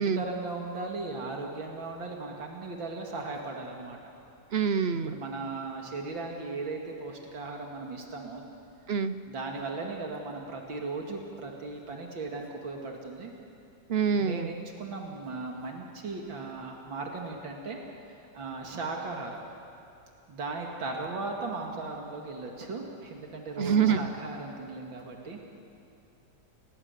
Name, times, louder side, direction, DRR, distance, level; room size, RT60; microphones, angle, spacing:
voice 1, 0.0-4.0 5.1-8.4 9.3-13.3 14.2-17.8 18.3-19.4 20.3-25.4, right 3 dB, 85° right, 0 dB, 3.0 m, -37 dB
voice 2, 4.5-5.1 8.9-9.2 13.9-14.5 23.6-24.1, right 7 dB, 55° right, 11 dB, 0.7 m, -26 dB
30.0 x 19.0 x 8.4 m, 2.6 s
omnidirectional pair, 2.1 m